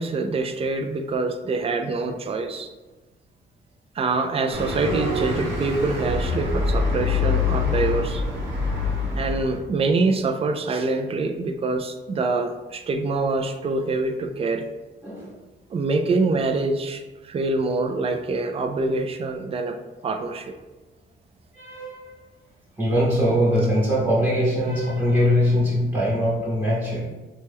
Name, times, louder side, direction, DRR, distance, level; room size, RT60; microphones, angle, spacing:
voice 1, 0.0-2.7 4.0-8.2 9.1-14.7 15.7-19.8 20.0-20.5, right 3 dB, 30° right, 6 dB, 0.3 m, -25 dB
sound 1, 4.5-9.6, left 4 dB, 60° right, 0.9 m, -25 dB
voice 2, 15.0-15.4 21.5-22.2 22.8-27.1, equal, 10° right, -9 dB, 0.9 m, -22 dB
3.0 x 2.2 x 3.4 m, 1.2 s
cardioid pair, 90°, 20 cm